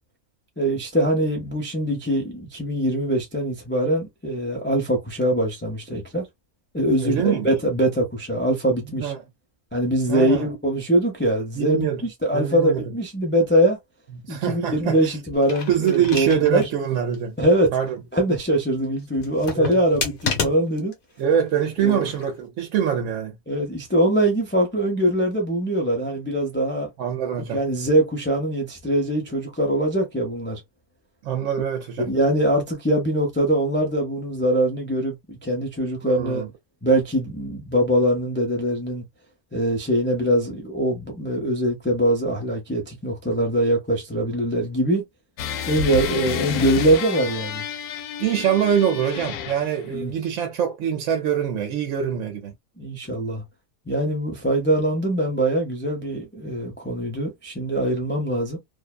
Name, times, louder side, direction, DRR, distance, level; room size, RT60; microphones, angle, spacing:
voice 1, 0.6-6.3 6.7-9.1 9.7-13.8 14.3-16.7 17.4-17.7 18.1-20.9 21.8-22.1 23.5-26.9 27.5-30.6 32.0-36.4 36.8-39.0 39.5-45.1 45.7-47.6 49.9-50.1 52.8-53.4 53.9-58.6, right 1 dB, 20° left, 0.3 m, -22 dB
voice 2, 7.0-7.5 9.0-9.2 10.1-10.5 11.6-12.0 12.3-12.8 14.2-15.1 15.7-17.4 17.7-18.0 19.5-19.8 21.2-23.4 27.0-27.6 31.2-32.1 36.0-36.5 48.2-52.5, right 8 dB, 65° right, 0.9 m, -24 dB
sound 1, 15.3-16.7 17.1-17.2 19.2-20.9 21.8-22.3, left 5 dB, 45° left, 0.8 m, -30 dB
sound 2, 45.4-49.9, left 6 dB, 90° left, 1.1 m, -30 dB
2.7 x 2.2 x 2.2 m
omnidirectional pair, 1.5 m